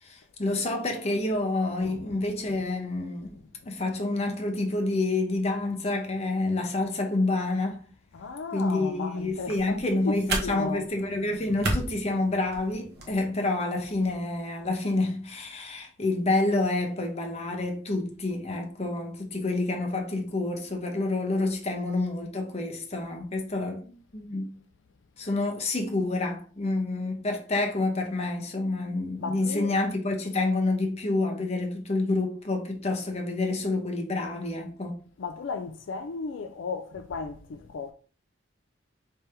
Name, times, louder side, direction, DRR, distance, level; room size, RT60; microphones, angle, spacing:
voice 1, 0.0-3.3 3.6-7.8 8.5-24.5 25.2-35.0, left 2 dB, 35° left, 0.9 m, -28 dB
voice 2, 1.8-2.2 3.2-3.7 8.1-10.9 29.2-29.8 35.2-37.9, left 4 dB, 75° left, 0.4 m, -36 dB
sound 1, 9.2-13.1, right 2 dB, 55° right, 1.1 m, -35 dB
3.4 x 3.4 x 4.3 m
head